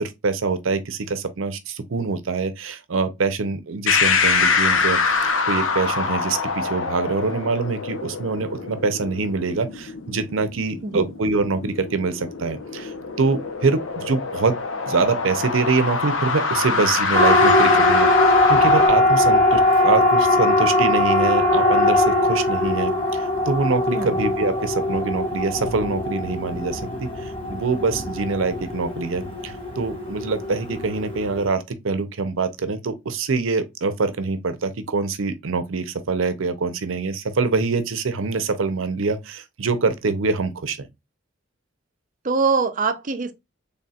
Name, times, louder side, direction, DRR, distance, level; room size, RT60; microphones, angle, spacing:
voice 1, 0.0-5.2 5.5-14.6 14.9-40.9, right 4 dB, 85° right, 0.6 m, -25 dB
sound 1, 3.9-18.9, left 4 dB, 75° left, 0.8 m, -24 dB
Siren, 17.1-31.4, left 2 dB, 30° left, 1.5 m, -20 dB
voice 2, 42.2-43.3, right 4 dB, 40° right, 0.6 m, -22 dB
4.1 x 3.5 x 2.3 m
head